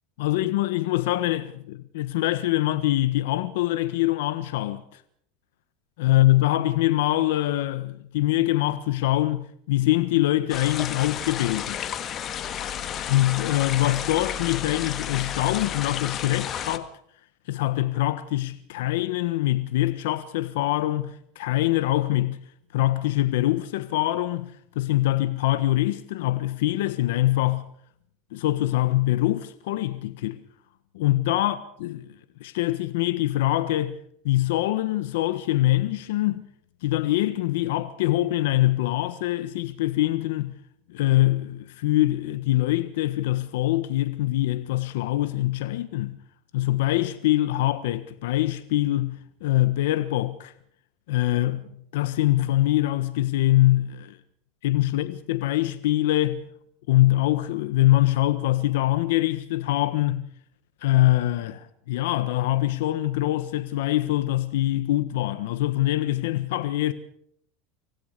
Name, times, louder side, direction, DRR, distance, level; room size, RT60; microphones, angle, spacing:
voice 1, 0.2-5.0 6.0-11.8 13.1-16.9 17.5-22.4 22.7-27.6 28.3-30.4 30.9-32.1 32.4-34.0 34.2-36.4 36.8-40.5 40.9-46.1 46.5-50.5 51.1-54.2 54.6-56.4 56.9-60.3 60.8-66.9, left 15 dB, 80° left, 1.3 m, -24 dB
sound 1, 10.5-16.8, left 9 dB, 35° left, 1.7 m, -32 dB
25.5 x 17.0 x 6.8 m
supercardioid pair, 130°, 0 cm